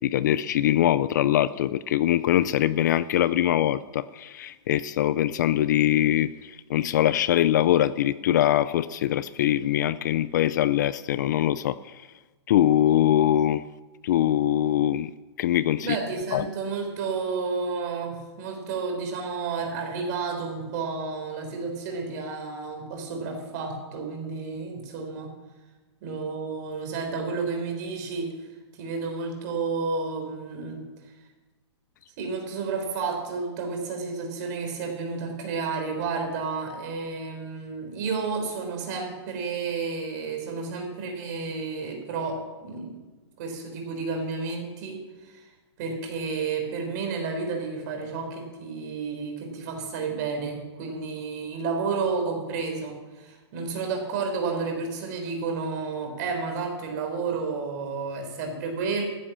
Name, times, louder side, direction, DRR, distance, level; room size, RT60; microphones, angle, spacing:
voice 1, 0.0-6.3 6.7-11.8 12.5-13.6 14.0-15.1 15.4-15.9 16.3-16.4, left 12 dB, 40° left, 17 dB, 0.3 m, -22 dB
voice 2, 15.8-25.3 26.0-28.3 28.8-30.8 32.2-43.0 43.4-45.0 45.8-59.0, right 4 dB, 40° right, 2 dB, 3.9 m, -31 dB
14.0 x 10.0 x 7.3 m, 1.2 s
hypercardioid pair, 165°, 15 cm